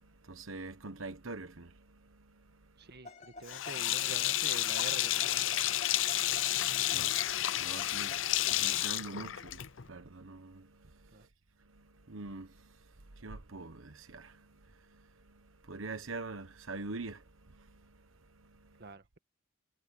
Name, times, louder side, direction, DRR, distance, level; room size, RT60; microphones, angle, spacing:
voice 1, 0.0-2.9 6.1-6.4 6.6-11.3 11.6-18.8, right 3 dB, 85° right, 1.2 m, -46 dB
voice 2, 2.8-5.7 11.1-11.3 18.8-19.2, right 3 dB, 55° right, 1.7 m, -47 dB
sound 1, 3.0-4.2 4.8-8.9, left 3 dB, 40° left, 3.6 m, -51 dB
Sink (filling or washing), 3.5-9.9, left 14 dB, 70° left, 0.6 m, -31 dB
head